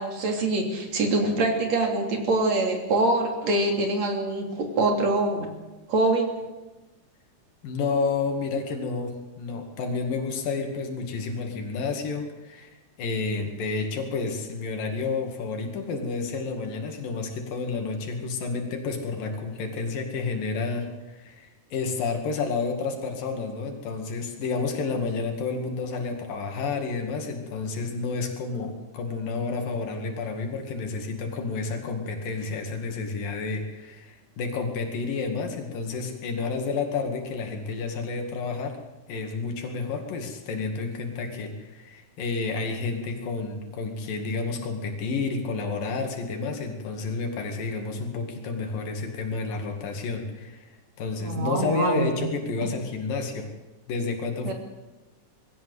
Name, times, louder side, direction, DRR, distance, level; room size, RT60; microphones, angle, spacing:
voice 1, 0.0-5.5 5.9-6.4 51.2-52.2 54.4-54.5, right 2 dB, 55° right, 3 dB, 4.1 m, -24 dB
voice 2, 7.6-12.7 13.0-38.8 39.1-53.5 53.9-54.5, left 4 dB, 90° left, 3 dB, 3.9 m, -30 dB
21.0 x 16.5 x 8.0 m, 1.1 s
omnidirectional pair, 3.8 m